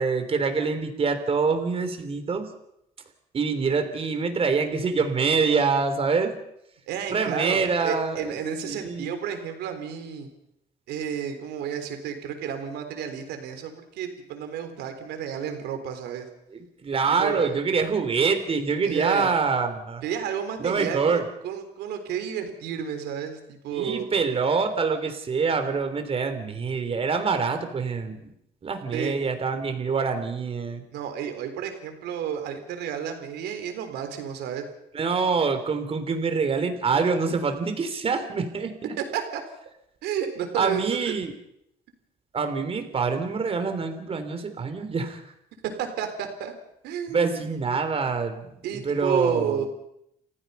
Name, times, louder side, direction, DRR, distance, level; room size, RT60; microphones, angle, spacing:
voice 1, 0.0-2.5 3.3-6.4 7.1-9.1 16.5-20.0 20.6-21.2 23.7-28.3 28.6-30.8 34.9-38.9 40.6-41.3 42.3-45.2 47.1-49.6, right 5 dB, 35° right, 7 dB, 3.5 m, -25 dB
voice 2, 6.9-10.3 10.9-16.3 17.1-17.5 18.8-19.3 20.0-24.1 28.9-29.2 30.9-34.7 39.1-39.4 40.0-41.1 45.8-46.5 46.8-47.5 48.6-49.7, right 8 dB, 80° right, 6 dB, 3.8 m, -31 dB
30.0 x 15.5 x 5.7 m, 0.78 s
cardioid pair, 110°, 17 cm